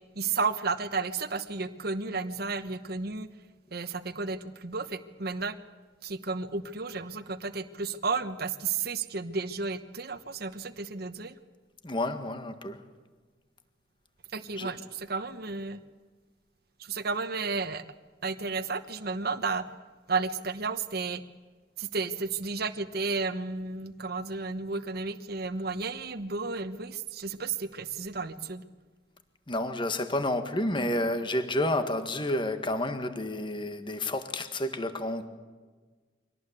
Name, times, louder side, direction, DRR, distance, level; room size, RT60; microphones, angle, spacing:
voice 1, 0.1-3.3 3.7-5.6 6.0-11.4 14.3-15.8 16.8-17.8 18.2-19.7 20.1-21.2 21.8-28.6, right 4 dB, 60° right, 9 dB, 1.1 m, -32 dB
voice 2, 11.8-12.8 14.6-14.7 29.5-35.3, left 1 dB, 30° left, 8 dB, 1.7 m, -30 dB
24.5 x 18.5 x 8.4 m, 1.4 s
head